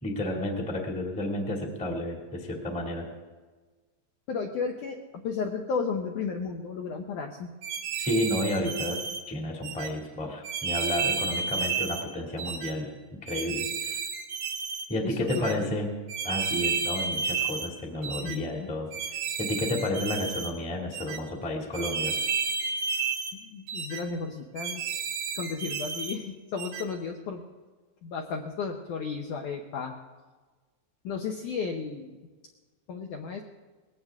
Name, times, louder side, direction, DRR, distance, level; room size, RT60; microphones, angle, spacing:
voice 1, 0.0-3.1 8.0-14.0 14.9-15.9 16.2-18.9 19.4-22.1, left 1 dB, 5° left, 1 dB, 0.9 m, -31 dB
voice 2, 4.3-7.5 15.0-15.7 18.2-18.7 23.3-25.0 25.4-27.4 28.0-30.0 31.0-32.2 32.9-33.4, left 5 dB, 75° left, 3 dB, 1.8 m, -34 dB
sound 1, 7.6-9.2 9.6-9.9 10.4-12.1 12.4-12.7 13.3-14.9 15.3-15.5 16.1-17.7 18.0-18.4 18.9-20.5 20.9-21.2 21.7-23.4 23.7-24.0 24.6-26.2 26.6-26.9, right 5 dB, 70° right, 1.8 m, -31 dB
20.0 x 16.5 x 3.6 m, 1.3 s
omnidirectional pair, 4.8 m